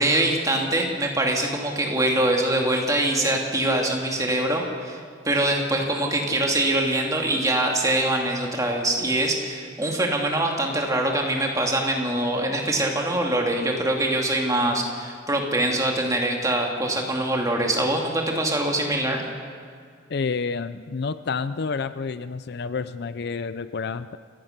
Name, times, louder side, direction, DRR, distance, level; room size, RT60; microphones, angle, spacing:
voice 1, 0.0-19.2, right 1 dB, 15° right, 0 dB, 2.5 m, -24 dB
voice 2, 20.1-24.2, left 5 dB, 55° left, 14 dB, 0.5 m, -29 dB
27.5 x 15.5 x 6.7 m, 2.1 s
head